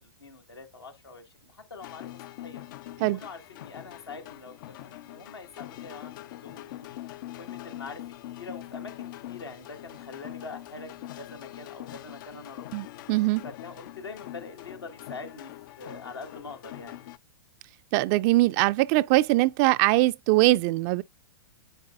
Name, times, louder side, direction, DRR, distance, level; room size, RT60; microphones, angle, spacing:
voice 1, 0.0-2.1 2.4-2.6 3.0-6.1 6.4-7.0 7.4-8.0 8.4-12.7 13.4-15.5 15.8-17.1, left 3 dB, 90° left, 1.9 m, -44 dB
sound 1, 1.8-17.2, left 15 dB, 55° left, 0.4 m, -43 dB
voice 2, 12.7-13.4 17.9-21.0, right 19 dB, 40° right, 0.4 m, -22 dB
8.9 x 4.7 x 2.6 m
hypercardioid pair, 110°, 13 cm